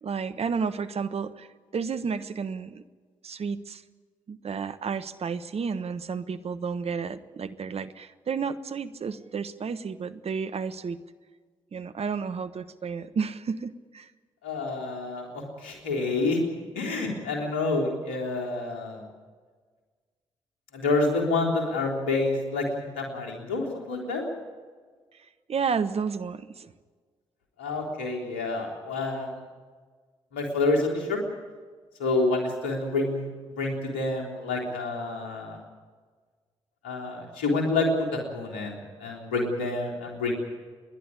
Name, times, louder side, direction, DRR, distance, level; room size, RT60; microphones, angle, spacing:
voice 1, 0.0-1.5 1.7-2.8 3.2-3.8 4.3-11.0 11.7-14.1 25.5-26.7, right 5 dB, 50° right, 12 dB, 1.2 m, -31 dB
voice 2, 14.4-16.4 16.8-19.0 20.7-24.2 27.6-29.3 30.3-31.2 32.0-33.3 33.6-35.6 36.8-40.3, left 3 dB, 85° left, 1 dB, 3.6 m, -28 dB
29.0 x 11.0 x 9.8 m, 1.5 s
hypercardioid pair, 40°, 13 cm